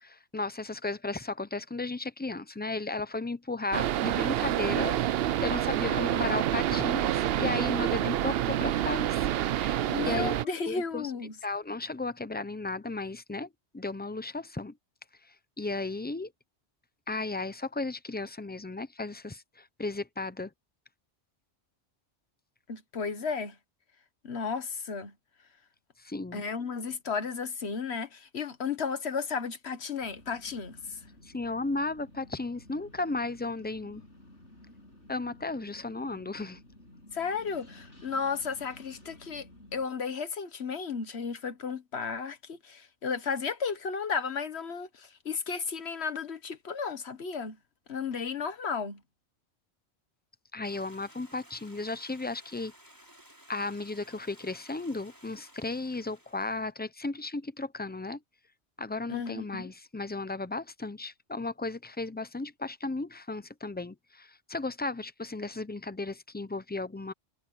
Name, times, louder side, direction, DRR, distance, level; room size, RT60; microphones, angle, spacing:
voice 1, 0.0-9.3 9.5-11.1 11.4-13.5 13.7-14.7 15.6-16.3 17.1-20.5 26.0-26.4 31.2-34.0 35.1-36.6 50.5-52.7 53.5-58.2 58.8-67.1, left 3 dB, 15° left, 0.3 m, -35 dB
sound 1, 3.7-10.4, right 12 dB, 65° right, 0.7 m, -28 dB
voice 2, 5.9-6.3 9.9-11.3 22.7-23.5 24.2-25.1 26.3-30.7 37.1-39.4 39.7-47.6 47.9-49.0 59.1-59.7, left 5 dB, 65° left, 1.5 m, -34 dB
sound 2, 30.0-39.8, left 1 dB, 85° left, 7.2 m, -54 dB
Stream, 50.6-56.7, equal, 15° right, 6.3 m, -56 dB
omnidirectional pair, 1.2 m